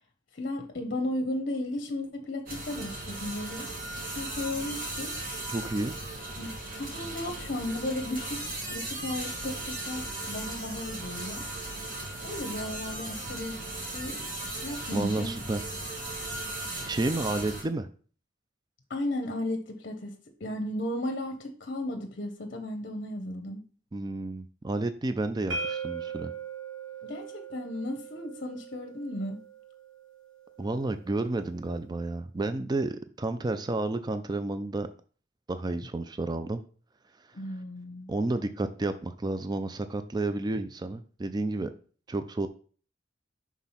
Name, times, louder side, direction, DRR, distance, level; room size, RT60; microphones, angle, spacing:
voice 1, 0.3-3.7 4.1-5.2 6.4-8.4 8.7-11.5 12.2-14.2 14.6-15.3 18.9-20.1 20.4-23.6 27.0-29.4 37.3-38.1, left 1 dB, 50° left, 4 dB, 0.8 m, -35 dB
sound 1, 2.5-17.6, right 2 dB, 50° right, 1.9 m, -37 dB
voice 2, 5.5-5.9 14.9-15.6 16.8-17.9 23.9-26.3 30.6-34.9 35.5-36.6 38.1-41.7 42.1-42.5, right 2 dB, 20° right, 10 dB, 0.4 m, -31 dB
sound 2, 25.5-31.3, right 5 dB, 75° right, 1.1 m, -40 dB
6.1 x 3.6 x 5.6 m, 0.42 s
head